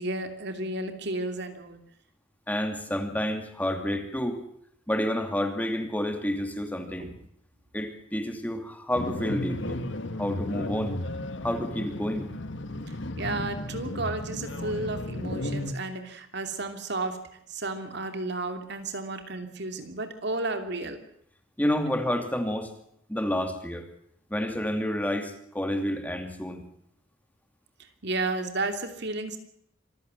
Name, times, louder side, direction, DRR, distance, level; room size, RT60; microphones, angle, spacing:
voice 1, 0.0-1.8 7.0-7.1 12.9-17.2 17.5-21.0 28.0-29.4, right 2 dB, 55° right, 7 dB, 2.9 m, -32 dB
voice 2, 2.5-4.4 4.9-7.1 7.7-9.9 10.2-11.0 11.4-12.3 21.6-22.7 23.1-23.9 24.3-26.7, equal, 10° left, 6 dB, 2.7 m, -29 dB
sound 1, 8.9-15.7, left 1 dB, 65° left, 1.6 m, -34 dB
25.5 x 15.5 x 7.7 m, 0.72 s
head